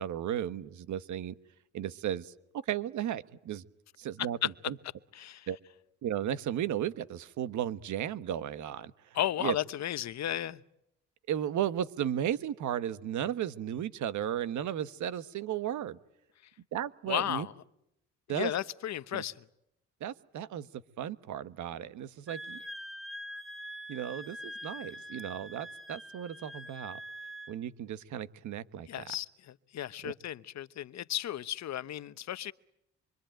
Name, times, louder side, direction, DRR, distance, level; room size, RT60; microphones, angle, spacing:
voice 1, 0.0-1.4 1.7-2.3 2.7-3.6 4.0-4.4 4.7-4.8 5.5-5.6 6.0-9.6 11.3-16.0 16.7-17.5 18.3-18.5 19.1-19.2 20.0-22.6 23.9-27.0 27.5-28.9 30.0-30.1, right 10 dB, 75° right, 14 dB, 1.3 m, -35 dB
voice 2, 5.1-5.5 9.1-10.6 17.1-17.5 18.3-19.4 28.9-32.5, left 12 dB, 65° left, 15 dB, 1.0 m, -34 dB
Wind instrument woodwind instrument, 22.3-27.6, equal, ahead, 1.4 m, -44 dB
27.0 x 24.5 x 9.1 m, 0.82 s
cardioid pair, 90°, 30 cm